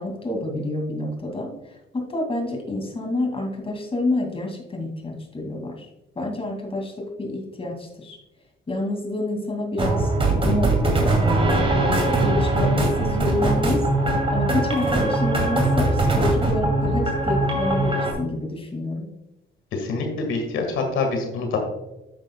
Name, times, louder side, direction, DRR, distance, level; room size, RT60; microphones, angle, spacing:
voice 1, 0.0-5.9 6.2-8.2 8.7-11.5 11.8-13.9 14.3-19.1, left 2 dB, 30° left, 2 dB, 2.3 m, -28 dB
sound 1, 9.8-18.1, right 2 dB, 25° right, 2.5 m, -21 dB
voice 2, 19.7-21.6, left 4 dB, 80° left, 3 dB, 1.7 m, -25 dB
10.0 x 7.3 x 2.2 m, 0.94 s
cardioid pair, 90°, 20 cm